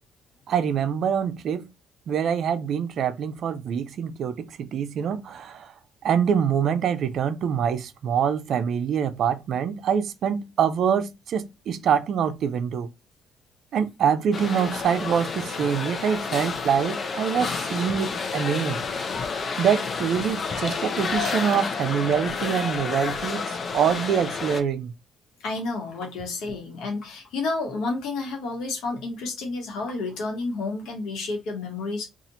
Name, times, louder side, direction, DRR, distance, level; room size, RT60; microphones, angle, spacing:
voice 1, 0.5-1.7 2.1-5.7 6.0-12.9 13.7-18.8 19.6-24.9, right 7 dB, 65° right, 0.4 m, -25 dB
sound 1, 14.3-24.6, left 5 dB, 45° left, 0.6 m, -30 dB
voice 2, 25.4-32.1, left 3 dB, 80° left, 1.2 m, -30 dB
2.8 x 2.4 x 4.0 m
cardioid pair, 80°, 0 cm